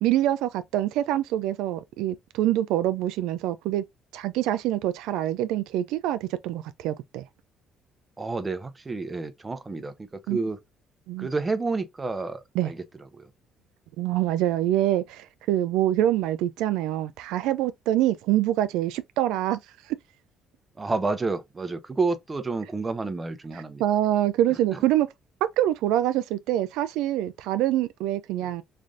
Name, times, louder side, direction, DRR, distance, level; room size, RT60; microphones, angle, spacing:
voice 1, 0.0-3.8 4.1-7.2 10.3-10.4 11.1-11.3 12.6-12.7 14.0-19.6 23.5-25.1 25.6-28.6, right 13 dB, 90° right, 0.3 m, -25 dB
voice 2, 8.2-10.6 11.2-12.8 13.1-13.3 20.8-23.8 24.7-24.8 28.4-28.5, right 3 dB, 20° right, 0.6 m, -30 dB
3.3 x 2.5 x 3.7 m
cardioid pair, 100°, 0 cm